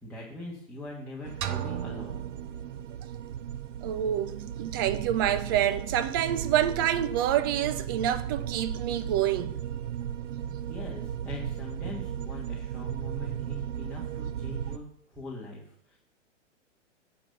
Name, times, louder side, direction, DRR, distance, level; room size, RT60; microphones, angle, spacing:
voice 1, 0.0-2.2 10.5-16.0, left 2 dB, 5° left, 1.8 m, -42 dB
sound 1, 1.2-14.8, right 9 dB, 75° right, 0.7 m, -36 dB
sound 2, 1.4-3.3, right 11 dB, 35° right, 0.9 m, -37 dB
voice 2, 3.8-9.6, right 11 dB, 20° right, 0.3 m, -27 dB
9.6 x 4.2 x 6.6 m
hypercardioid pair, 125°, 37 cm